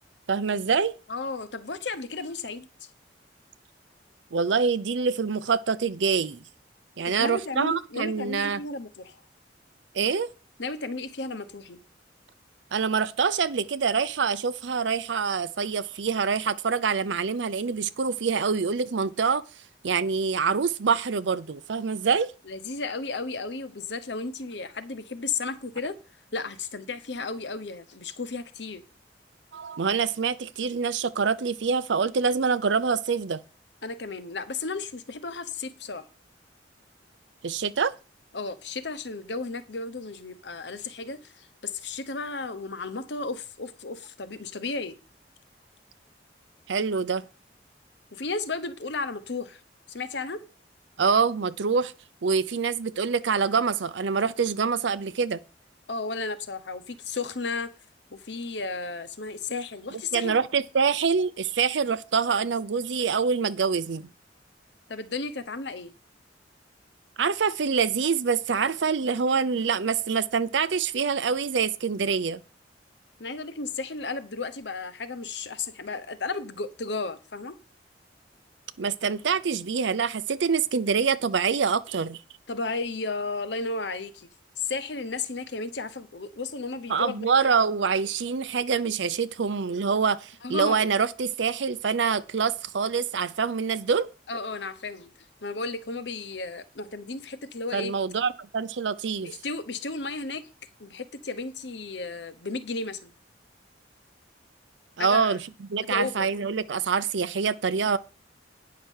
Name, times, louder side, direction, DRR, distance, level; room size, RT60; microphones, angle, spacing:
voice 1, 0.3-0.9 4.3-6.4 7.0-8.6 9.9-10.3 12.7-19.4 19.8-22.3 29.5-33.4 37.4-37.9 46.7-47.2 51.0-51.9 52.2-55.4 59.9-64.1 67.2-72.4 78.8-82.2 86.9-94.1 97.7-99.3 105.0-108.0, right 5 dB, 85° right, 0.6 m, -25 dB
voice 2, 1.1-2.7 7.0-9.2 10.6-11.8 22.5-26.0 26.3-28.8 33.8-36.1 38.3-45.0 48.1-49.6 49.9-50.5 55.9-57.7 58.1-60.4 64.9-65.9 73.2-77.6 82.5-84.3 84.6-87.2 90.4-90.8 94.3-95.1 95.4-97.9 99.2-100.5 100.8-103.1 105.0-105.4 105.8-106.3, left 3 dB, 70° left, 1.1 m, -34 dB
9.5 x 5.9 x 6.4 m
head